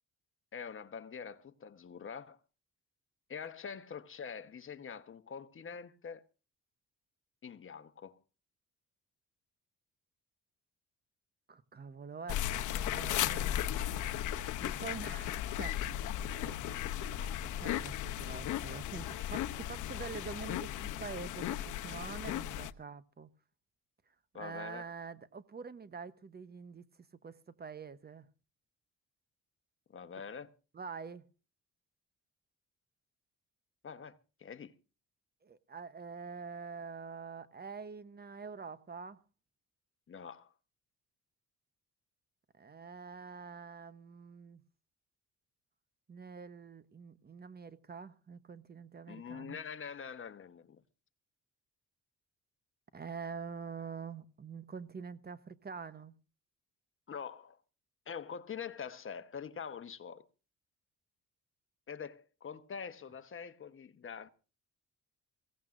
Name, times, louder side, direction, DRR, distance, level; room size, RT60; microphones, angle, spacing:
voice 1, 0.5-2.4 3.3-6.2 7.4-8.2 24.3-24.9 29.9-30.5 33.8-34.7 40.1-40.5 49.1-50.8 57.1-57.6 58.1-60.3 61.9-64.3, left 6 dB, 45° left, 1.2 m, -45 dB
voice 2, 11.5-13.6 14.6-16.0 16.4-23.3 24.4-26.9 27.2-28.3 30.7-31.2 35.4-39.2 42.6-44.6 46.1-49.6 52.9-56.1, right 5 dB, 30° right, 1.0 m, -46 dB
sound 1, 12.3-22.7, left 12 dB, 80° left, 0.8 m, -36 dB
22.5 x 16.5 x 2.6 m
cardioid pair, 90°, 30 cm